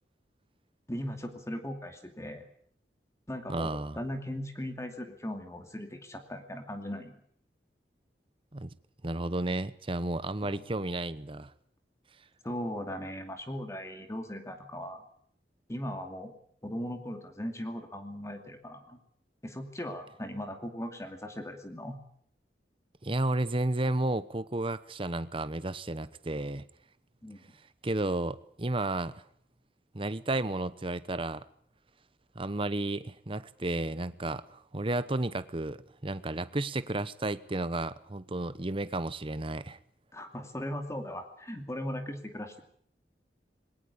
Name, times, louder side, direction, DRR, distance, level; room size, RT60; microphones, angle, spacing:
voice 1, 0.9-2.4 3.3-7.2 10.4-10.6 12.4-15.0 15.7-16.4 16.6-19.0 19.4-22.0 27.2-27.4 40.1-42.6, equal, 15° left, 5 dB, 2.5 m, -38 dB
voice 2, 3.5-4.0 8.5-8.7 9.0-11.5 23.0-26.7 27.8-29.2 29.9-31.4 32.3-39.8, right 2 dB, 30° right, 14 dB, 0.9 m, -32 dB
21.0 x 18.5 x 8.4 m, 0.62 s
head